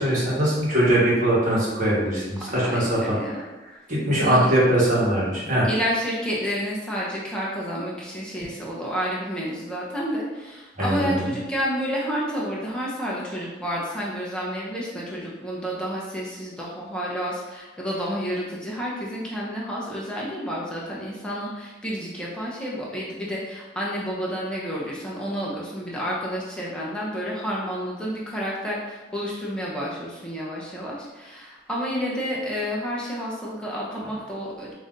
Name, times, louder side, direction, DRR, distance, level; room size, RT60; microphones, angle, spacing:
voice 1, 0.0-3.2 3.9-5.7 10.8-11.3, right 1 dB, 45° right, -7 dB, 1.3 m, -21 dB
voice 2, 2.6-3.4 4.2-4.5 5.6-34.7, equal, 5° left, -5 dB, 0.7 m, -30 dB
5.5 x 2.7 x 2.5 m, 1.2 s
head